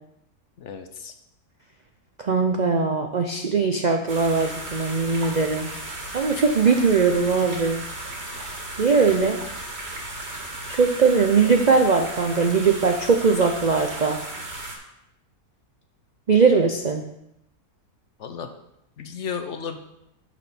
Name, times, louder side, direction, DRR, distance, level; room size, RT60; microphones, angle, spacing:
voice 1, 0.6-1.1 18.2-18.5 19.0-19.8, left 6 dB, 60° left, 7 dB, 0.9 m, -33 dB
voice 2, 2.2-5.7 6.1-7.8 8.3-8.4 8.8-9.4 10.7-14.2 16.3-17.0, right 5 dB, 75° right, 4 dB, 0.4 m, -20 dB
sound 1, 4.1-14.7, right 2 dB, 45° right, 1.9 m, -35 dB
6.2 x 5.9 x 6.9 m, 0.82 s
omnidirectional pair, 1.7 m